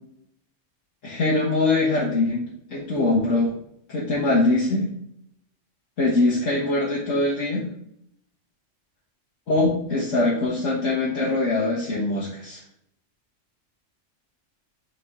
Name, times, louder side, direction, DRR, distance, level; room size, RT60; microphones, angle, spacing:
voice 1, 1.0-3.5 3.9-4.9 6.0-7.7 9.5-12.6, left 2 dB, 85° left, -6 dB, 1.7 m, -22 dB
5.7 x 4.8 x 3.6 m, 0.72 s
omnidirectional pair, 1.3 m